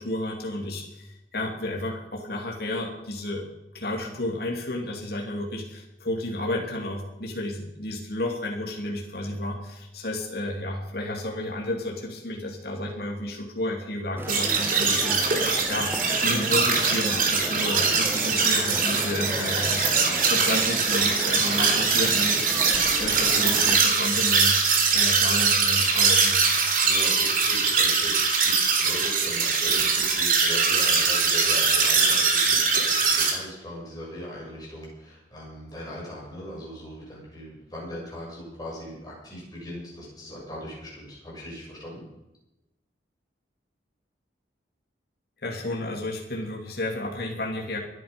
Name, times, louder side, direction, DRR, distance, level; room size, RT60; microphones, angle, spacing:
voice 1, 0.0-3.5 3.7-15.3 15.7-15.9 16.2-24.6 24.9-26.5 45.4-47.8, left 1 dB, 60° left, -1 dB, 2.8 m, -31 dB
sound 1, 14.2-23.8, right 1 dB, 15° right, 1.0 m, -35 dB
sound 2, 14.3-33.3, right 5 dB, 50° right, 3.2 m, -22 dB
voice 2, 26.8-42.0, equal, 20° left, -4 dB, 7.1 m, -39 dB
23.5 x 9.4 x 5.3 m, 0.94 s
head